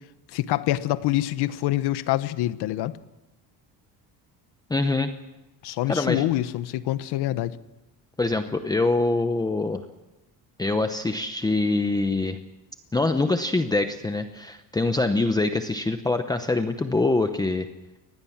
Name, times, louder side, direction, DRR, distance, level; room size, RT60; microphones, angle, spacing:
voice 1, 0.3-3.0 5.6-7.6, left 15 dB, 75° left, 14 dB, 1.1 m, -26 dB
voice 2, 4.7-5.1 5.9-6.2 8.2-9.8 10.6-12.4 12.9-17.7, left 2 dB, 10° left, 7 dB, 0.8 m, -24 dB
25.0 x 19.5 x 7.3 m, 1.0 s
cardioid pair, 170°, 40 cm